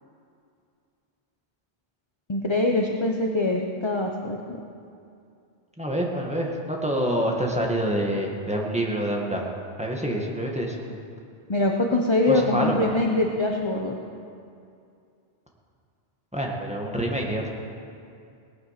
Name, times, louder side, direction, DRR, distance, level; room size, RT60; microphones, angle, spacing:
voice 1, 2.3-4.6 11.5-14.0, left 2 dB, 25° left, 1 dB, 0.9 m, -23 dB
voice 2, 5.8-9.5 9.8-11.0 12.3-12.9 16.3-17.5, right 1 dB, 5° right, -2 dB, 1.9 m, -27 dB
18.0 x 9.8 x 5.9 m, 2.4 s
omnidirectional pair, 1.1 m